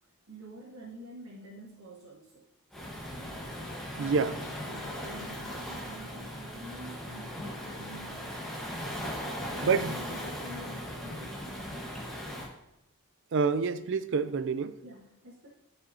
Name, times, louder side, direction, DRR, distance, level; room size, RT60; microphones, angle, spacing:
voice 1, 0.3-2.5 3.9-11.4 14.8-15.5, equal, 75° right, -5 dB, 1.3 m, -49 dB
Waves surf, 2.7-12.5, equal, ahead, 1.1 m, -38 dB
voice 2, 4.0-4.3 9.6-10.0 13.3-14.7, right 5 dB, 60° right, 13 dB, 0.4 m, -27 dB
11.5 x 5.0 x 2.7 m, 0.86 s
head